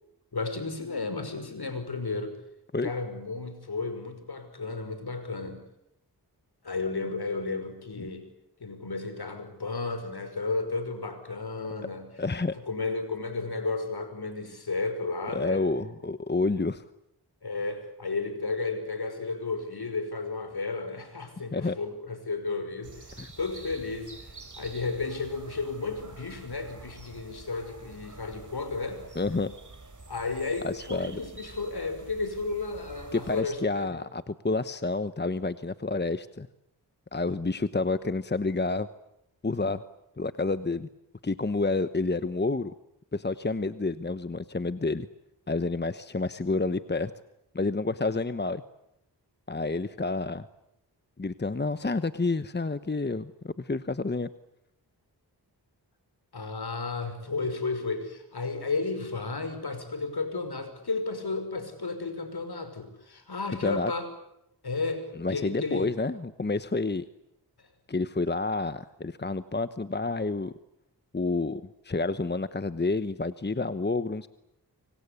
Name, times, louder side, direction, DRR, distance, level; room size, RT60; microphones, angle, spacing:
voice 1, 0.3-2.3 2.8-5.7 6.6-8.3 8.6-12.1 12.5-15.6 17.4-22.9 23.4-24.1 24.6-29.1 30.1-34.0 56.3-64.1 64.6-65.9, left 3 dB, 65° left, 9 dB, 5.6 m, -33 dB
voice 2, 12.2-12.5 15.3-16.8 21.5-21.7 23.2-23.3 29.1-29.5 30.6-31.2 33.1-36.5 37.1-38.9 39.4-39.8 40.2-40.9 41.2-42.7 43.1-45.1 45.5-47.1 47.5-48.6 49.5-50.5 51.2-54.3 63.6-63.9 65.2-67.0 67.9-70.5 71.1-74.3, left 3 dB, 25° left, 13 dB, 1.1 m, -29 dB
sound 1, 22.8-33.4, right 3 dB, 45° right, 4.9 m, -48 dB
26.0 x 25.0 x 8.4 m, 0.82 s
cardioid pair, 55°, 41 cm